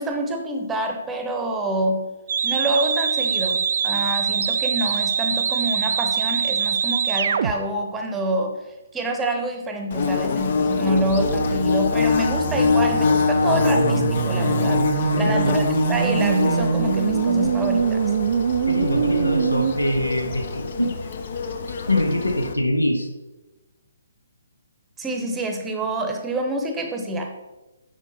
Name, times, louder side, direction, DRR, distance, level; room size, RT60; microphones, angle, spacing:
voice 1, 0.0-2.1 2.4-8.6 8.9-18.1 25.0-27.3, right 1 dB, 10° right, 4 dB, 0.8 m, -27 dB
sound 1, 2.3-7.5 10.6-19.7, right 7 dB, 50° right, 0.3 m, -24 dB
Bird / Buzz, 9.9-22.5, left 4 dB, 50° left, 0.6 m, -24 dB
voice 2, 15.1-15.6 18.7-21.0 21.9-23.1, left 1 dB, 90° left, 7 dB, 0.8 m, -23 dB
7.1 x 5.0 x 4.2 m, 1.1 s
figure-of-eight pair, 135°, 0 cm